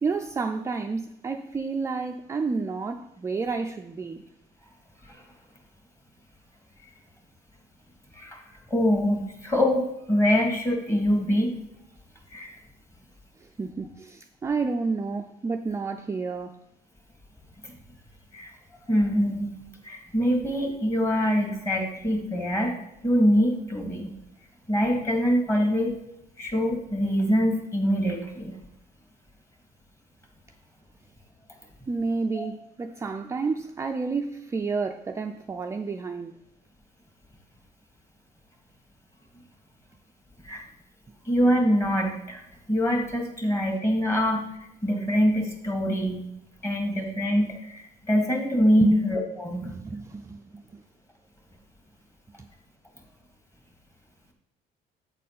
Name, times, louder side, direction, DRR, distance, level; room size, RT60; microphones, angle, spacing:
voice 1, 0.0-4.2 13.4-16.6 31.9-36.3 48.8-49.0 49.6-50.8 52.4-52.5, right 4 dB, 15° right, 0.3 m, -30 dB
voice 2, 8.7-11.5 12.3-12.6 18.3-18.5 18.9-19.5 19.8-22.7 23.0-24.1 24.7-26.0 26.4-28.6 32.4-32.5 40.4-40.6 41.3-42.4 42.7-44.4 44.8-46.3 46.6-49.7, equal, 15° left, 1.8 m, -24 dB
8.4 x 4.2 x 5.6 m
cardioid pair, 110°, 17 cm